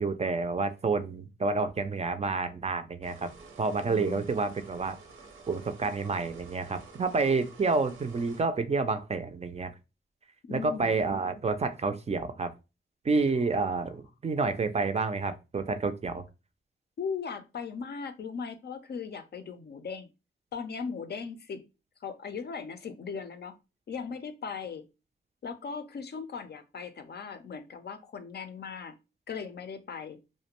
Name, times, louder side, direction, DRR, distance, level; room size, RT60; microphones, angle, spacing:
voice 1, 0.0-3.3 3.6-5.0 5.5-9.7 10.5-12.5 13.0-16.2, right 4 dB, 30° right, 9 dB, 0.4 m, -29 dB
sound 1, 3.0-8.4, right 4 dB, 80° right, 0.7 m, -51 dB
voice 2, 3.9-4.3 10.5-10.9 17.0-20.1 20.5-21.7 22.0-23.6 23.9-24.8 25.4-29.0 29.3-30.2, left 5 dB, 55° left, 9 dB, 0.4 m, -38 dB
2.4 x 2.1 x 2.9 m, 0.28 s
cardioid pair, 55°, 21 cm